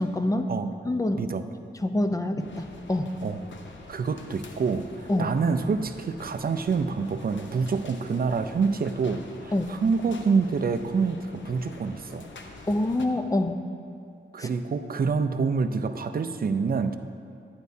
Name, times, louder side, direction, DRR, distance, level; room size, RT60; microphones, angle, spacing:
voice 1, 0.0-0.5 0.8-1.3 1.7-3.1 5.1-5.3 9.5-9.8 12.7-13.6 14.4-14.5, left 1 dB, 15° left, 7 dB, 0.5 m, -26 dB
sound 1, 2.4-13.1, left 3 dB, 75° left, 0.8 m, -46 dB
voice 2, 3.9-12.3 14.3-17.0, right 5 dB, 50° right, 9 dB, 0.5 m, -27 dB
11.5 x 9.4 x 2.7 m, 2.4 s
wide cardioid pair, 90°, 20 cm